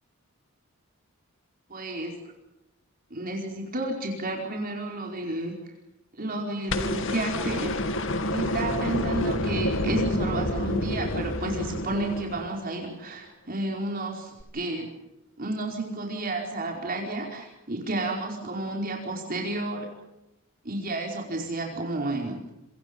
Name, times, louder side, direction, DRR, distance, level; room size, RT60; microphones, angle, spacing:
voice 1, 1.7-2.2 3.1-5.6 6.1-7.8 8.3-14.9 15.4-19.9 20.6-22.4, right 2 dB, 45° right, 0 dB, 4.8 m, -31 dB
sound 1, 6.7-12.9 14.4-14.5, left 1 dB, 65° left, 2.4 m, -28 dB
28.5 x 26.0 x 5.4 m, 0.93 s
head